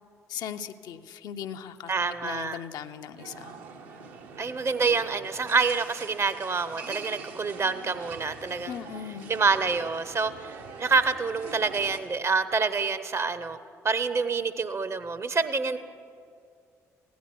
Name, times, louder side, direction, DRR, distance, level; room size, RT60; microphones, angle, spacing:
voice 1, 0.3-1.9 2.2-3.6 8.7-9.3, left 8 dB, 55° left, 8 dB, 0.5 m, -38 dB
voice 2, 1.9-2.6 4.4-8.8 9.3-13.6 13.8-15.8, right 4 dB, 35° right, 13 dB, 0.7 m, -27 dB
sound 1, 3.2-12.0, right 5 dB, 70° right, 0.9 m, -44 dB
16.0 x 10.5 x 4.5 m, 2.4 s
figure-of-eight pair, 45°, 8 cm